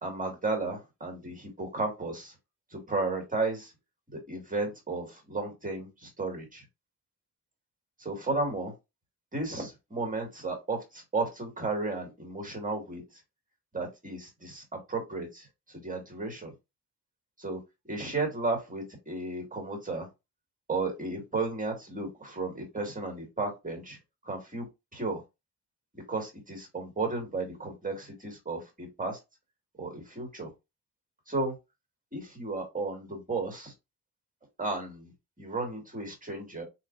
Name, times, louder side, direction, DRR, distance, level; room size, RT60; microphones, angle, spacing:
voice 1, 0.0-2.3 2.7-3.7 4.1-6.6 8.0-8.7 9.3-13.2 13.7-16.5 17.4-17.6 17.9-20.1 20.7-24.0 24.2-24.7 24.9-25.2 25.9-29.2 29.8-30.5 31.3-31.5 32.1-33.7 34.6-35.1 35.4-36.6, right 3 dB, 20° right, 3 dB, 2.2 m, -34 dB
4.2 x 3.1 x 2.6 m, 0.23 s
cardioid pair, 75°, 38 cm